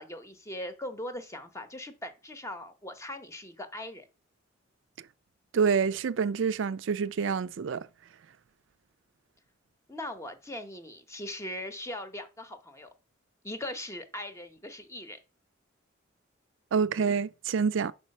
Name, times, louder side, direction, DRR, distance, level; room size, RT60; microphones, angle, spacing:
voice 1, 0.0-4.1 9.9-12.9 13.4-15.2, left 1 dB, 15° left, 0.8 m, -40 dB
voice 2, 5.5-7.9 16.7-17.9, right 6 dB, 70° right, 0.4 m, -27 dB
6.0 x 4.8 x 5.3 m
head